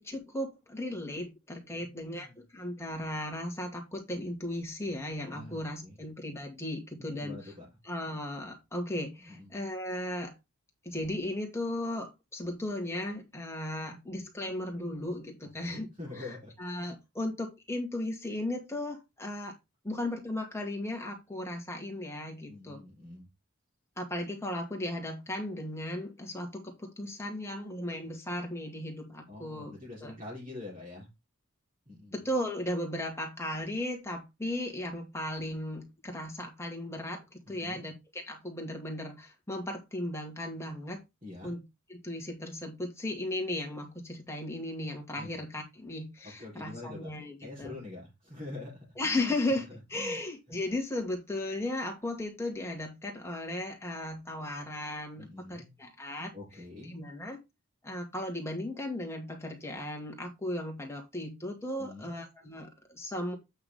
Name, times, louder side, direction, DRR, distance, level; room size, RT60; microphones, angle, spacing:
voice 1, 0.0-7.4 7.8-10.3 10.8-15.9 16.1-19.5 19.8-22.8 24.0-29.7 30.0-30.1 32.1-41.0 41.4-41.6 41.9-47.8 49.0-49.6 49.9-56.3 56.8-57.4 57.8-63.4, left 1 dB, 10° left, 2 dB, 2.1 m, -36 dB
voice 2, 1.7-2.4 5.3-6.0 7.0-7.6 9.2-9.5 15.6-16.5 16.8-16.9 22.5-23.2 29.3-31.1 31.9-32.2 37.5-37.9 41.2-41.5 45.2-45.4 46.2-47.1 47.4-49.3 49.7-50.2 50.5-50.6 55.2-55.8 56.3-56.9 61.8-62.1, left 2 dB, 35° right, -6 dB, 3.9 m, -45 dB
8.7 x 6.0 x 3.6 m, 0.22 s
head